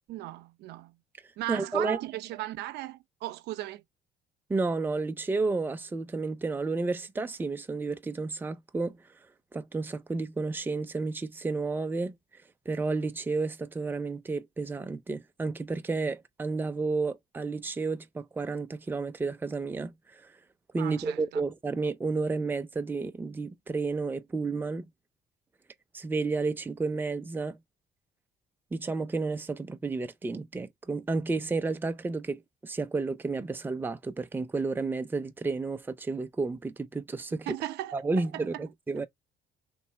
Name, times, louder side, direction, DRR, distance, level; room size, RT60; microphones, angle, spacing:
voice 1, 0.1-1.0 1.4-3.8 20.8-21.4 37.5-38.0 38.3-38.6, right 15 dB, 80° right, 0.6 m, -36 dB
voice 2, 1.5-2.0 4.5-9.0 9.5-12.2 12.7-20.3 20.7-24.8 25.9-27.6 28.7-37.5 37.9-39.1, right 3 dB, 10° right, 0.5 m, -31 dB
3.2 x 2.6 x 4.4 m
cardioid pair, 110°, 17 cm